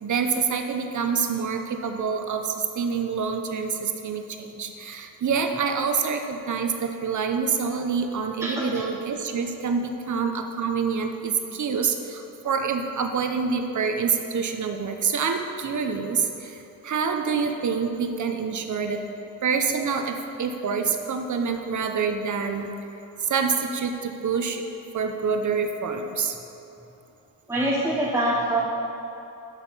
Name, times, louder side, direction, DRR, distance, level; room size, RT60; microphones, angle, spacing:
voice 1, 0.0-19.0 19.4-22.7 23.2-24.6 24.9-26.4, right 5 dB, 55° right, 5 dB, 0.9 m, -26 dB
voice 2, 27.5-28.7, right 1 dB, 10° right, -5 dB, 0.9 m, -24 dB
11.5 x 6.5 x 5.6 m, 3.0 s
wide cardioid pair, 175°, 35 cm